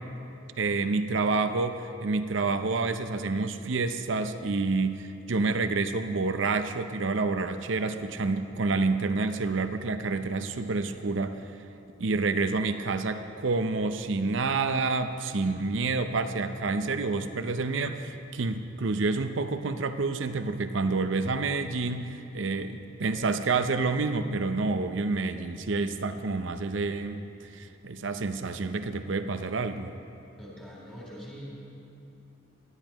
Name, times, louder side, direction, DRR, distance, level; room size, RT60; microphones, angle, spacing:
voice 1, 0.6-11.4 12.0-29.9, right 3 dB, 70° right, 9 dB, 0.6 m, -28 dB
voice 2, 30.4-31.6, equal, 5° left, -6 dB, 3.4 m, -43 dB
19.0 x 12.5 x 3.0 m, 2.7 s
head